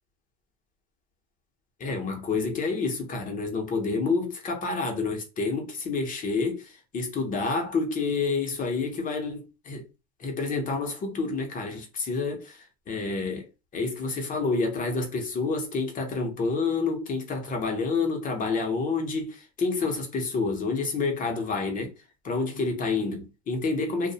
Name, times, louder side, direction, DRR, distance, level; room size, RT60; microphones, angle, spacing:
voice 1, 1.8-6.7 6.9-9.8 10.2-13.5 13.7-21.9 22.2-24.1, left 4 dB, 25° left, 0.6 m, -28 dB
2.6 x 2.0 x 2.7 m
cardioid pair, 145°, 34 cm